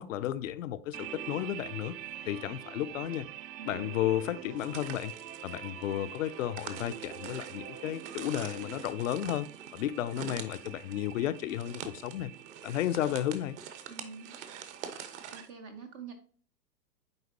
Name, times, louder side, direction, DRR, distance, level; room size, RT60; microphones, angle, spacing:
voice 1, 0.0-1.9 2.3-3.3 3.7-5.1 5.4-12.3 12.6-13.6, left 12 dB, 50° left, 0.5 m, -33 dB
sound 1, 0.9-15.5, right 12 dB, 85° right, 0.6 m, -47 dB
sound 2, 2.1-3.4 3.7-8.9, right 7 dB, 65° right, 1.0 m, -49 dB
voice 2, 3.6-4.1 13.9-14.4 14.9-16.1, right 5 dB, 20° right, 0.4 m, -47 dB
sound 3, 4.6-15.5, right 8 dB, 45° right, 1.0 m, -45 dB
9.5 x 3.8 x 2.7 m
figure-of-eight pair, 105°, 50 cm